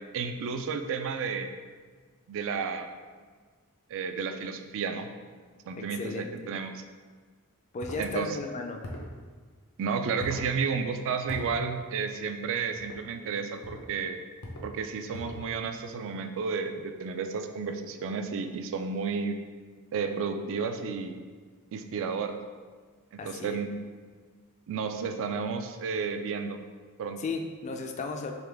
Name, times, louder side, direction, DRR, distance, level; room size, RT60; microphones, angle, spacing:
voice 1, 0.1-1.5 2.3-2.9 3.9-5.1 5.7-6.7 8.0-8.3 9.8-14.2 14.6-19.4 19.9-21.2 21.7-22.4 23.1-23.8 24.7-26.6 27.0-27.2, right 5 dB, 60° right, 7 dB, 0.3 m, -32 dB
voice 2, 5.9-6.3 7.7-8.8 23.2-23.6 27.2-28.3, left 4 dB, 30° left, 4 dB, 0.3 m, -35 dB
sound 1, 7.8-8.0 8.8-9.1 10.2-10.5 11.3-11.5 12.7-13.0 13.6-13.9 14.4-14.7 15.1-15.5, left 1 dB, 85° left, 0.7 m, -39 dB
3.6 x 3.0 x 3.4 m, 1.5 s
head